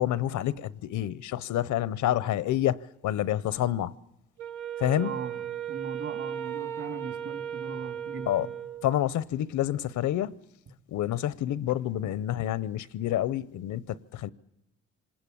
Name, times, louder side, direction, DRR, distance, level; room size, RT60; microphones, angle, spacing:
voice 1, 0.0-3.9 4.8-5.1 8.3-8.5 8.8-10.3 10.9-14.3, left 12 dB, 75° left, 0.8 m, -28 dB
Wind instrument woodwind instrument, 4.4-9.0, right 9 dB, 80° right, 1.5 m, -36 dB
voice 2, 5.0-5.4 5.7-8.5, right 5 dB, 50° right, 3.8 m, -39 dB
25.5 x 20.0 x 8.6 m
cardioid pair, 90°, 30 cm